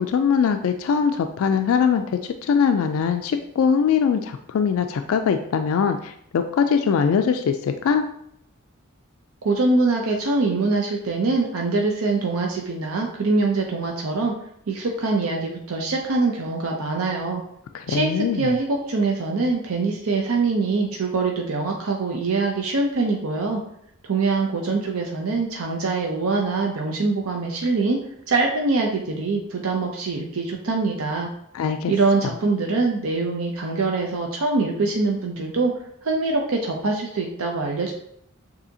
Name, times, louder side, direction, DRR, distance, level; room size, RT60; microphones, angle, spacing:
voice 1, 0.0-8.0 17.7-18.5 31.5-31.9, left 6 dB, 75° left, 7 dB, 0.3 m, -22 dB
voice 2, 9.4-14.3 14.7-17.4 17.9-23.6 24.1-28.0 28.3-31.3 31.9-35.7 36.0-37.9, right 3 dB, 85° right, 1 dB, 0.6 m, -23 dB
6.7 x 2.7 x 2.7 m, 0.72 s
head